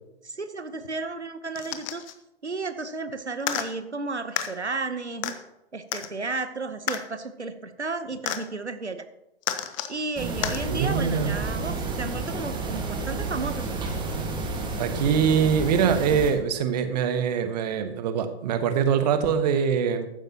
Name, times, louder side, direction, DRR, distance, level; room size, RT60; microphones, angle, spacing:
voice 1, 0.2-2.0 2.4-5.3 5.7-9.0 9.9-13.7, right 3 dB, 85° right, 10 dB, 1.0 m, -33 dB
sound 1, 1.5-2.1 3.4-3.7 4.4-4.5 5.2-5.3 5.9-6.1 6.9-7.0 8.3-8.4 9.4-9.9 10.4-10.6 11.5-11.6, left 11 dB, 30° left, 1.0 m, -30 dB
sound 2, 10.2-16.3, right 3 dB, 15° right, 1.7 m, -30 dB
voice 2, 10.7-11.4 14.8-20.1, right 7 dB, 40° right, 10 dB, 1.2 m, -23 dB
14.5 x 12.0 x 2.9 m, 0.90 s
figure-of-eight pair, 115°, 33 cm